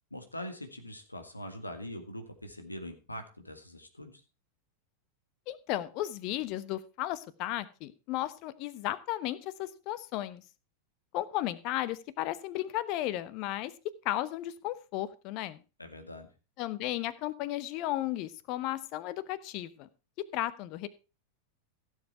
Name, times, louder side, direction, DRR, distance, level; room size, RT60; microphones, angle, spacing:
voice 1, 0.1-4.2 15.8-16.3, left 1 dB, 85° left, 6 dB, 2.0 m, -43 dB
voice 2, 5.5-10.4 11.1-13.7 14.0-15.6 16.6-19.9 20.3-20.9, left 14 dB, 40° left, 17 dB, 1.0 m, -34 dB
16.0 x 7.6 x 4.4 m, 0.31 s
figure-of-eight pair, 90°, 0 cm